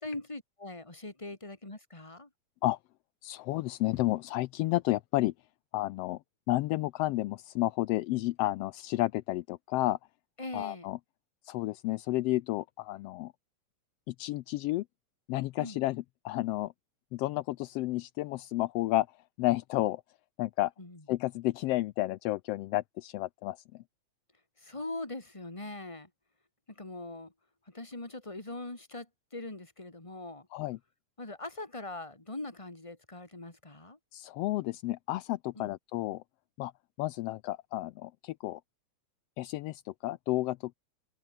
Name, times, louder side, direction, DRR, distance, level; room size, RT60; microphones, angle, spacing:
voice 1, 0.0-2.3 10.4-10.8 15.6-15.8 20.8-21.0 24.6-26.1 26.8-27.3 27.7-29.1 29.3-30.5 31.2-34.0 35.6-35.7, left 2 dB, 10° left, 3.0 m, -41 dB
voice 2, 3.2-5.3 5.7-6.2 6.5-10.0 10.5-11.0 11.4-13.3 14.1-14.8 15.3-16.7 17.1-19.1 19.4-20.0 20.4-20.7 21.1-23.8 30.5-30.8 34.1-36.2 36.6-36.7 37.0-38.6 39.4-40.7, left 17 dB, 85° left, 1.4 m, -31 dB
omnidirectional pair, 3.3 m